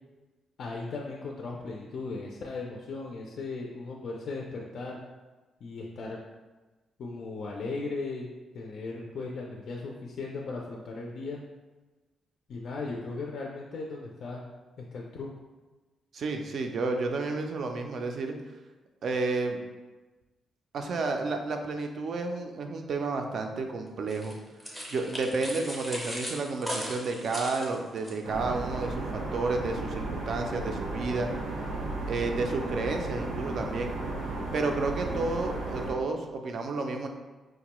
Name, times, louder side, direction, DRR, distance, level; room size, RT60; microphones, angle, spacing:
voice 1, 0.6-5.0 5.6-6.2 7.0-8.3 8.5-11.4 12.5-14.5 14.8-15.3, left 3 dB, 55° left, -1 dB, 0.4 m, -37 dB
voice 2, 16.1-18.4 19.0-19.6 20.7-24.4 24.9-31.3 32.1-33.9 34.5-37.1, right 3 dB, 50° right, 4 dB, 0.4 m, -31 dB
sound 1, 24.1-28.2, equal, 5° right, 0.6 m, -38 dB
sound 2, 28.2-35.9, right 2 dB, 90° right, 0.7 m, -34 dB
4.7 x 2.2 x 2.9 m, 1.2 s
wide cardioid pair, 165°, 0 cm